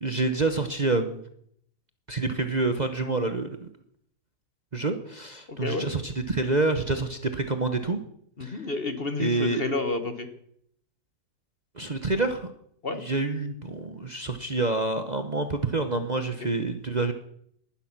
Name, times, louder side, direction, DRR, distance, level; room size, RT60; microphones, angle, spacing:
voice 1, 0.0-1.2 2.1-3.7 4.7-8.0 8.4-8.7 9.2-9.6 11.7-12.5 12.9-17.1, right 3 dB, 30° right, 7 dB, 1.1 m, -27 dB
voice 2, 5.5-5.8 8.4-10.3 12.8-13.0 16.4-16.5, left 3 dB, 40° left, 9 dB, 1.6 m, -30 dB
19.5 x 11.5 x 6.1 m, 0.69 s
omnidirectional pair, 1.6 m